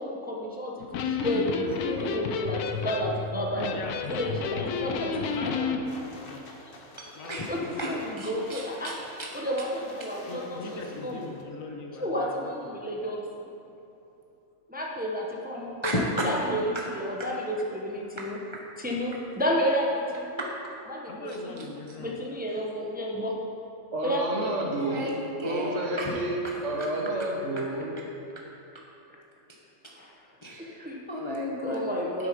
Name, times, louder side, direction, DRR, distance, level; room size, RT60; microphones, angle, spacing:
voice 1, 0.0-3.7 4.1-5.1 6.6-6.8 7.5-8.9 9.3-11.3 12.0-13.2 14.7-15.8 16.2-16.6 16.9-18.4 18.8-20.3 20.9-21.6 22.0-23.4 24.0-24.5 25.6-25.7 29.9-30.1 30.6-31.0 31.6-32.3, equal, 10° right, -2 dB, 0.8 m, -31 dB
Electric guitar, 0.8-5.8, left 5 dB, 85° left, 1.2 m, -31 dB
voice 2, 1.3-1.7 3.3-3.7 7.0-7.5 7.8-7.9 8.2-8.9 9.2-9.3 15.8-16.3 17.2-17.3 20.4-20.5 21.3-21.6 24.6-26.1 26.4-26.6 29.8-29.9 30.4-31.9 32.2-32.3, equal, 25° left, -2 dB, 0.8 m, -34 dB
voice 3, 3.7-6.4 7.2-8.0 10.3-12.9 21.1-22.2, left 2 dB, 65° left, 2 dB, 1.4 m, -40 dB
sound 1, 5.8-11.4, left 2 dB, 45° left, 1.1 m, -49 dB
voice 4, 23.9-25.1 25.4-27.9, right 1 dB, 55° right, -2 dB, 1.6 m, -30 dB
9.9 x 8.4 x 5.1 m, 2.9 s
omnidirectional pair, 1.6 m